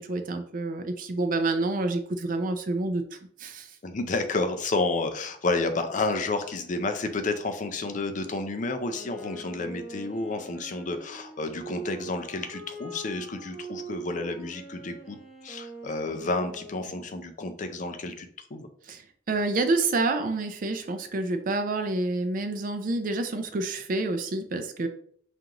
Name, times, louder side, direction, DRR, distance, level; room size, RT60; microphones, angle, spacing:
voice 1, 0.0-3.0 3.4-3.7 18.9-19.0 19.3-24.9, right 2 dB, 45° right, 7 dB, 0.4 m, -28 dB
voice 2, 3.8-18.7, left 3 dB, 45° left, 7 dB, 0.5 m, -30 dB
Wind instrument woodwind instrument, 8.9-17.2, right 2 dB, 5° right, 0.8 m, -43 dB
5.1 x 2.5 x 2.9 m, 0.62 s
head